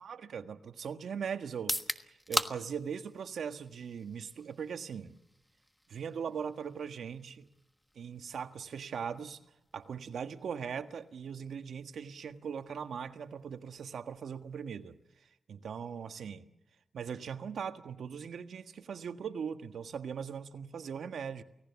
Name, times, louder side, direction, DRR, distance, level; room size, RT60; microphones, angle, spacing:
voice 1, 0.0-5.1 5.9-7.5 7.9-9.4 9.7-15.0 15.5-16.5 16.9-21.4, right 7 dB, 80° right, 8 dB, 1.5 m, -40 dB
sound 1, 1.5-15.4, equal, 5° left, 1.4 m, -44 dB
29.0 x 18.0 x 7.1 m, 0.87 s
cardioid pair, 85°, 0 cm